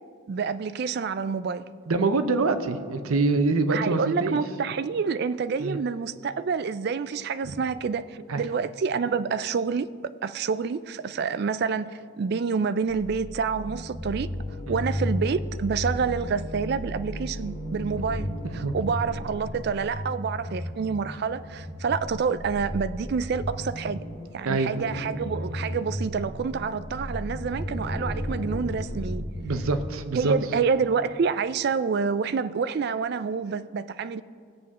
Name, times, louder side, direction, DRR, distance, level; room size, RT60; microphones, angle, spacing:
voice 1, 0.3-1.7 3.7-14.3 14.7-24.0 24.3-29.3 30.1-34.2, right 5 dB, 50° right, 0.3 m, -28 dB
voice 2, 1.9-4.4 5.6-5.8 7.4-7.5 8.3-8.4 14.7-14.8 18.4-18.7 24.4-24.8 29.4-30.3, right 3 dB, 85° right, 0.7 m, -25 dB
sound 1, 12.9-29.8, equal, 40° left, 1.4 m, -34 dB
18.5 x 7.5 x 3.6 m
head